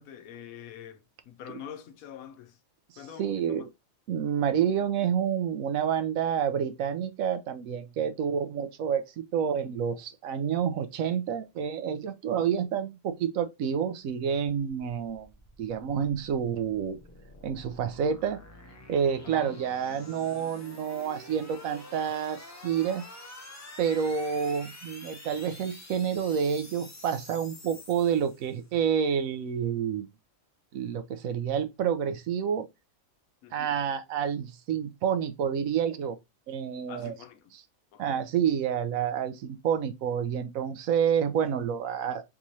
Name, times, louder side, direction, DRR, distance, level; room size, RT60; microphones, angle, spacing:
voice 1, 0.0-2.6 3.0-3.7 19.2-19.5 33.4-33.7 36.9-37.5 37.9-38.2, left 9 dB, 90° left, 1.1 m, -45 dB
voice 2, 3.2-3.7 4.1-15.3 15.6-17.0 17.4-18.4 18.9-23.0 23.8-30.1 30.7-32.7 33.5-36.2 36.5-37.1 38.0-42.2, right 8 dB, 75° right, 1.0 m, -29 dB
sound 1, 15.0-28.7, left 1 dB, 30° left, 0.3 m, -48 dB
3.6 x 3.0 x 2.6 m
omnidirectional pair, 1.5 m